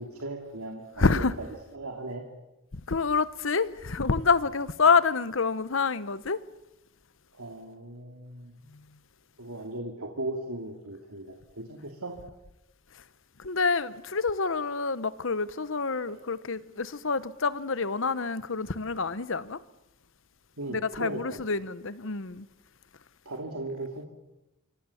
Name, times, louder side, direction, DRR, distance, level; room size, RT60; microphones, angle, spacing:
voice 1, 0.0-1.3 1.7-2.3 7.3-8.5 9.4-12.2 16.1-16.2 20.6-21.4 23.2-24.1, right 2 dB, 85° right, 2.6 m, -37 dB
voice 2, 1.0-1.3 2.7-6.4 8.7-8.8 13.4-19.6 20.7-22.5, left 4 dB, 60° left, 0.9 m, -27 dB
27.5 x 25.0 x 7.1 m
head